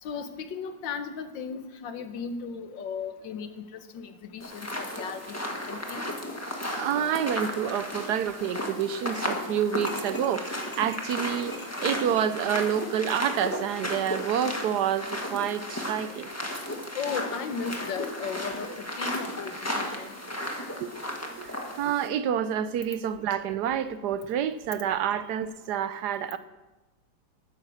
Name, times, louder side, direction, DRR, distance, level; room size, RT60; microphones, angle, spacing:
voice 1, 0.0-5.3 5.7-6.0 17.0-18.7 19.0-20.2, left 6 dB, 80° left, 1.8 m, -36 dB
sound 1, 4.4-22.1, left 1 dB, 10° left, 1.3 m, -34 dB
voice 2, 6.7-16.3 20.8-20.9 21.4-26.4, right 9 dB, 70° right, 1.1 m, -28 dB
sound 2, 9.9-12.3, left 2 dB, 25° left, 0.4 m, -46 dB
13.0 x 9.6 x 6.4 m
omnidirectional pair, 2.0 m